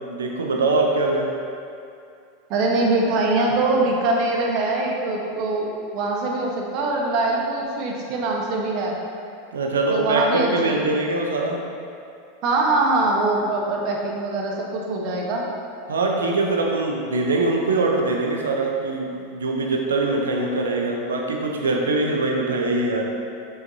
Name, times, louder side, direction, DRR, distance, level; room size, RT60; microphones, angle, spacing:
voice 1, 0.0-1.3 9.5-11.6 15.9-23.1, right 2 dB, 85° right, 1 dB, 0.7 m, -23 dB
voice 2, 2.5-8.9 9.9-10.9 12.4-15.4, right 2 dB, 55° right, -1 dB, 1.1 m, -23 dB
6.3 x 5.7 x 2.7 m, 2.5 s
hypercardioid pair, 95°, 0 cm